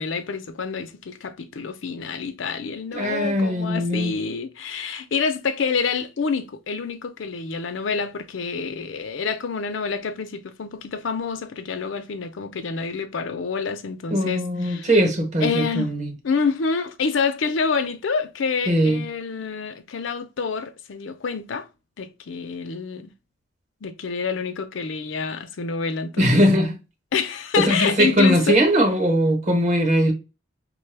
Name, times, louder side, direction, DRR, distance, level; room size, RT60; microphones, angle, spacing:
voice 1, 0.0-14.9 15.4-15.9 16.2-21.7 22.0-23.1 23.8-26.4 27.1-28.6, left 5 dB, 90° left, 0.5 m, -27 dB
voice 2, 2.9-4.1 14.1-16.1 18.7-19.0 26.2-26.8 27.6-30.1, equal, 40° right, 0.9 m, -20 dB
5.0 x 2.2 x 3.3 m
head